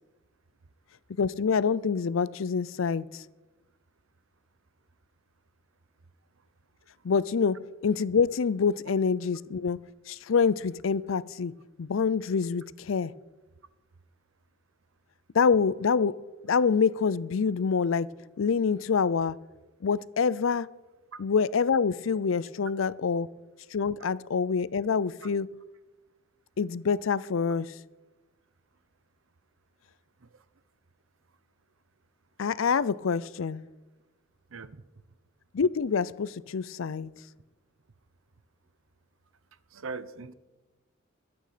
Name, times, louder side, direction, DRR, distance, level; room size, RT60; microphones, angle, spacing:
voice 1, 1.2-3.2 7.0-9.8 10.1-13.1 15.3-18.1 18.4-19.4 19.8-20.7 21.2-23.3 23.7-25.6 26.6-27.7 32.4-33.6 35.5-37.1, left 5 dB, 70° left, 19 dB, 0.5 m, -26 dB
voice 2, 34.5-34.8 39.7-40.3, right 4 dB, 75° right, 15 dB, 0.7 m, -40 dB
22.0 x 8.8 x 5.1 m, 1.2 s
head